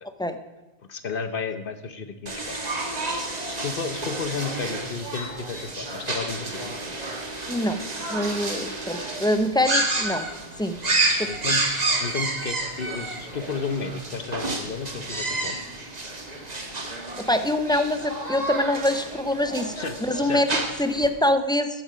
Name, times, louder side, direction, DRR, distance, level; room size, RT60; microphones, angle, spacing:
voice 1, 0.9-2.6 3.5-6.8 10.8-11.0 11.3-11.6 12.0-15.6 19.7-20.4, left 5 dB, 60° left, 9 dB, 1.2 m, -32 dB
sound 1, 2.3-21.1, right 2 dB, 40° right, 1.7 m, -30 dB
voice 2, 7.5-7.8 8.1-10.3 10.6-10.8 11.2-11.3 17.2-19.7 20.0-21.8, left 1 dB, 5° left, 9 dB, 0.6 m, -24 dB
14.0 x 10.5 x 5.1 m, 1.1 s
omnidirectional pair, 1.1 m